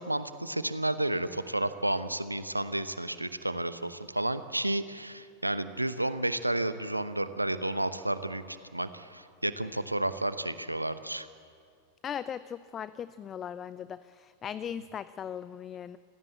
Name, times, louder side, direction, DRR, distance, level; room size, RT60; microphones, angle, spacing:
voice 1, 0.0-11.3, right 1 dB, 85° right, 12 dB, 0.9 m, -31 dB
voice 2, 12.0-16.0, left 8 dB, 25° left, 17 dB, 0.5 m, -38 dB
26.5 x 16.5 x 8.4 m, 2.3 s
figure-of-eight pair, 90°, 0 cm